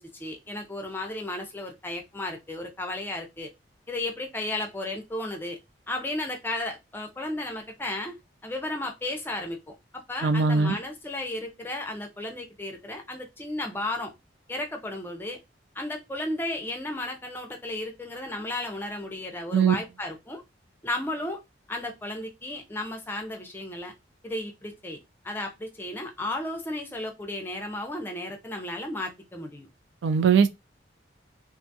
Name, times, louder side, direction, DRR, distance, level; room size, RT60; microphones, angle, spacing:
voice 1, 0.0-3.5 3.9-5.6 5.9-14.1 14.5-15.4 15.7-20.4 20.8-21.4 21.7-23.9 24.2-25.0 25.2-29.7, left 1 dB, 10° left, 0.4 m, -34 dB
voice 2, 10.2-10.8 19.5-19.7 30.0-30.5, right 6 dB, 75° right, 0.3 m, -20 dB
2.5 x 2.3 x 2.6 m
head